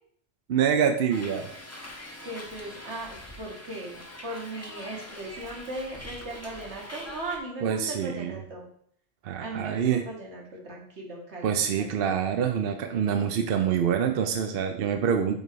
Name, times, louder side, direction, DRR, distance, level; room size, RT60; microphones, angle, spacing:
voice 1, 0.5-1.5 7.6-8.3 9.2-10.0 11.4-15.4, right 8 dB, 65° right, 6 dB, 0.7 m, -26 dB
Hiss, 1.1-7.4, left 1 dB, 15° left, 0.7 m, -43 dB
voice 2, 2.2-8.7 9.4-12.0, right 2 dB, 80° right, -2 dB, 1.8 m, -38 dB
5.4 x 3.9 x 4.6 m, 0.63 s
omnidirectional pair, 1.1 m